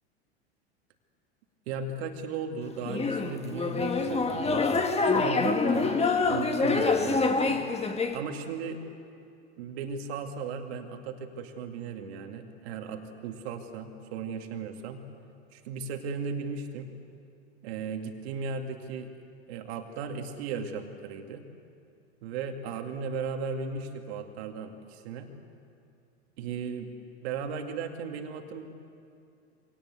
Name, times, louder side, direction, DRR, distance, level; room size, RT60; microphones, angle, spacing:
voice 1, 1.7-4.5 5.1-6.0 6.2-7.6 8.1-8.8 9.6-15.1 15.5-16.9 17.6-19.1 19.5-21.4 22.2-25.3 26.4-26.9 27.2-28.7, right 5 dB, 70° right, 4 dB, 2.3 m, -36 dB
sound 1, 2.8-8.2, left 4 dB, 20° left, 1.8 m, -26 dB
24.5 x 18.5 x 8.3 m, 2.5 s
hypercardioid pair, 95°, 33 cm